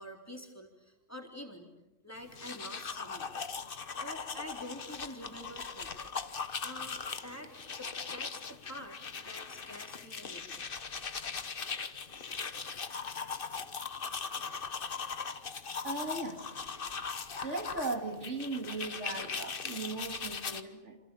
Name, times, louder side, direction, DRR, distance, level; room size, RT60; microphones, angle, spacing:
voice 1, 0.0-1.7 2.0-3.4 4.0-5.9 6.6-10.6, left 1 dB, 10° left, 3.8 m, -47 dB
sound 1, 2.2-20.6, left 5 dB, 45° left, 1.3 m, -40 dB
voice 2, 15.8-16.4 17.4-21.0, right 2 dB, 65° right, 3.0 m, -37 dB
28.5 x 27.5 x 7.1 m
omnidirectional pair, 1.3 m